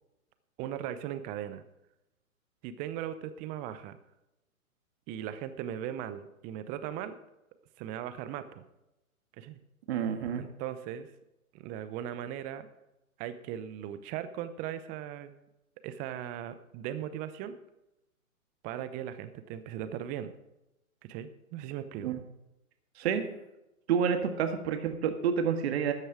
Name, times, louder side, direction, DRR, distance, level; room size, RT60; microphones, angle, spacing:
voice 1, 0.6-1.6 2.6-4.0 5.1-7.1 7.8-8.6 9.4-9.6 10.3-11.1 11.5-12.7 13.2-15.3 15.8-17.6 18.6-20.3 21.1-22.1, right 10 dB, 20° right, 12 dB, 0.7 m, -38 dB
voice 2, 9.9-10.5 22.0-22.2 23.0-23.2 23.9-25.9, right 7 dB, 45° right, 7 dB, 1.7 m, -29 dB
13.0 x 9.4 x 5.0 m, 0.92 s
hypercardioid pair, 125°, 43 cm